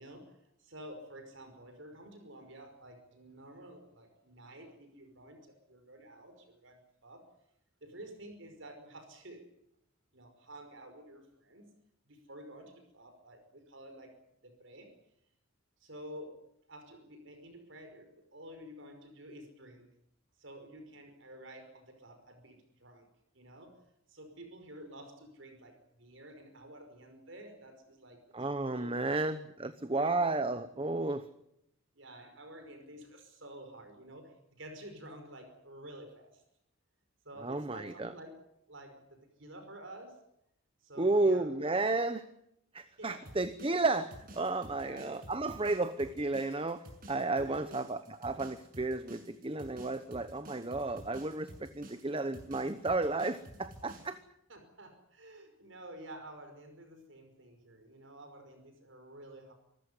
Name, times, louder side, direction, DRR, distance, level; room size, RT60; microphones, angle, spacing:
voice 1, 0.0-7.2 7.8-9.4 10.1-11.7 12.1-14.1 14.4-14.9 15.8-19.9 20.4-23.1 23.3-23.8 24.1-29.2 29.9-30.7 32.0-36.4 37.2-40.2 40.8-41.5 43.0-43.3 44.7-45.1 47.4-47.9 53.9-54.0 54.5-59.5, right 1 dB, 65° right, 6 dB, 5.4 m, -51 dB
voice 2, 28.3-31.3 37.4-38.1 41.0-42.3 42.7-54.2, right 2 dB, 25° right, 11 dB, 0.9 m, -32 dB
sound 1, 43.3-54.2, right 1 dB, 45° right, 6.5 m, -51 dB
26.0 x 14.5 x 9.8 m, 0.79 s
head